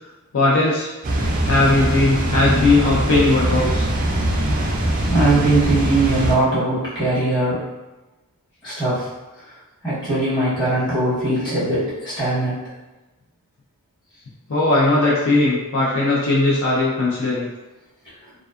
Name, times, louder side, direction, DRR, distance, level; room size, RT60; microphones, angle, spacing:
voice 1, 0.3-0.9 1.4-3.9 14.5-17.5, left 2 dB, 65° left, -5 dB, 0.5 m, -18 dB
Water, 1.0-6.4, right 1 dB, 35° right, 0.3 m, -21 dB
voice 2, 5.1-7.6 8.6-9.1 9.8-12.6, right 2 dB, 20° left, -11 dB, 1.1 m, -20 dB
2.5 x 2.3 x 2.4 m, 1.1 s
head